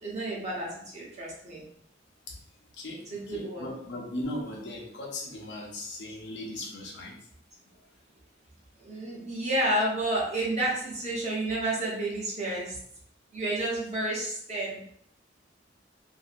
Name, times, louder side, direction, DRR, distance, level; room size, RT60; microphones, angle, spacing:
voice 1, 0.0-1.6 3.1-3.7 8.8-12.8 13.3-14.8, right 1 dB, 40° right, -4 dB, 0.9 m, -30 dB
voice 2, 2.7-7.2, left 1 dB, 80° left, -1 dB, 0.8 m, -38 dB
2.9 x 2.6 x 2.5 m, 0.69 s
head